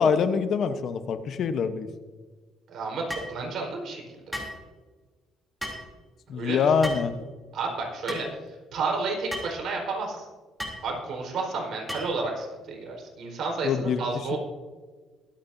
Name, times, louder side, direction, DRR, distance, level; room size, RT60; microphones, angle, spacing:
voice 1, 0.0-1.9 6.3-7.1 13.6-14.0 14.3-14.4, left 6 dB, 60° left, 10 dB, 1.0 m, -24 dB
voice 2, 2.7-4.4 6.3-6.7 7.5-8.3 8.7-10.3 10.8-14.4, right 3 dB, 65° right, 0 dB, 4.4 m, -31 dB
sound 1, 3.1-3.3 4.3-4.6 5.6-5.9 6.8-7.1 8.1-8.3 9.3-9.5 10.6-10.8 11.9-12.2, equal, ahead, 3.3 m, -34 dB
23.0 x 8.7 x 2.7 m, 1.4 s
cardioid pair, 85°, 0 cm